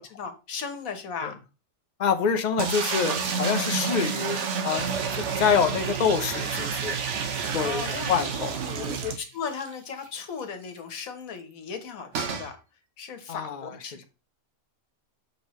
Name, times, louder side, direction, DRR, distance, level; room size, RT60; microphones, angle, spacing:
voice 1, 0.0-1.3 7.6-8.3 8.6-12.5 13.0-14.0, left 6 dB, 65° left, 1.4 m, -36 dB
voice 2, 2.0-4.9 5.4-7.0 7.5-8.5 8.9-9.0 13.3-13.6, left 6 dB, 50° left, 0.5 m, -26 dB
sound 1, 2.6-9.7 10.1-10.2 10.4-10.5 12.1-12.5, right 5 dB, 55° right, 1.1 m, -30 dB
sound 2, 4.8-9.2, right 10 dB, 70° right, 0.6 m, -36 dB
6.4 x 5.4 x 3.1 m
omnidirectional pair, 1.6 m